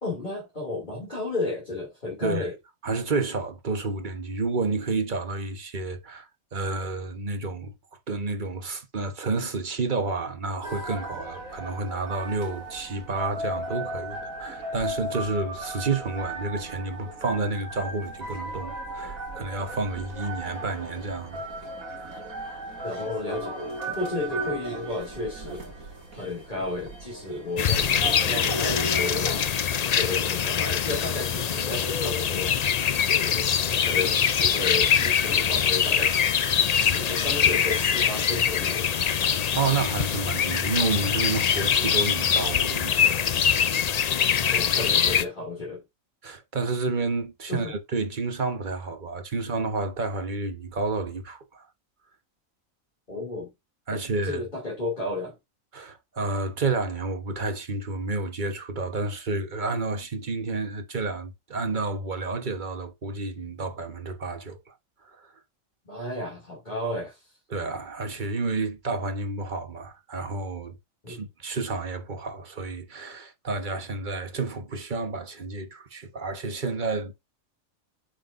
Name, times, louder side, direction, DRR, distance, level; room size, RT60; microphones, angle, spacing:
voice 1, 0.0-2.5 22.8-25.7 26.1-29.4 30.0-32.6 33.2-39.0 44.5-45.8 47.5-47.7 53.1-53.5 53.9-54.0 54.2-55.3 65.8-67.2 71.0-71.2, left 2 dB, 35° left, 2.9 m, -33 dB
voice 2, 2.2-2.5 2.8-7.7 8.1-21.4 21.8-22.2 39.5-43.2 46.2-51.6 53.9-54.4 55.7-64.6 65.1-65.3 67.5-70.8 71.1-77.1, right 3 dB, 35° right, 1.3 m, -30 dB
sound 1, 10.6-29.5, right 1 dB, 80° right, 2.9 m, -36 dB
sound 2, 27.6-45.2, left 7 dB, 85° left, 0.3 m, -23 dB
8.2 x 5.9 x 2.6 m
omnidirectional pair, 1.4 m